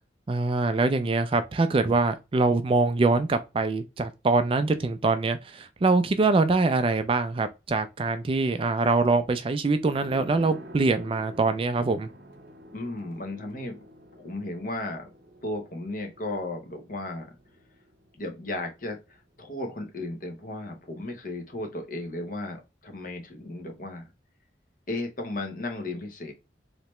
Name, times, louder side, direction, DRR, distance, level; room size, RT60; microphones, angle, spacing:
voice 1, 0.3-12.1, right 3 dB, 30° right, 0.3 m, -24 dB
sound 1, 9.9-19.2 19.4-19.5, equal, 80° right, 0.7 m, -48 dB
voice 2, 12.7-13.8 14.2-15.1 15.4-17.3 18.2-24.1 24.9-26.3, left 2 dB, 50° left, 0.9 m, -35 dB
3.3 x 2.8 x 3.1 m
head